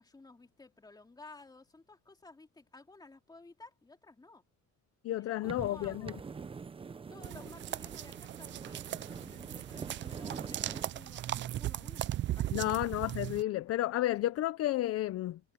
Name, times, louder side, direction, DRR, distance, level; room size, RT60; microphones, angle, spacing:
voice 1, 0.0-4.4 5.2-6.2 7.1-12.0 12.4-12.7, left 3 dB, 10° left, 3.5 m, -54 dB
voice 2, 5.0-6.1 12.5-15.4, left 14 dB, 50° left, 0.6 m, -32 dB
sound 1, 5.4-10.9, right 5 dB, 15° right, 0.7 m, -45 dB
sound 2, 7.2-13.4, right 13 dB, 40° right, 0.4 m, -38 dB
cardioid pair, 160°, 31 cm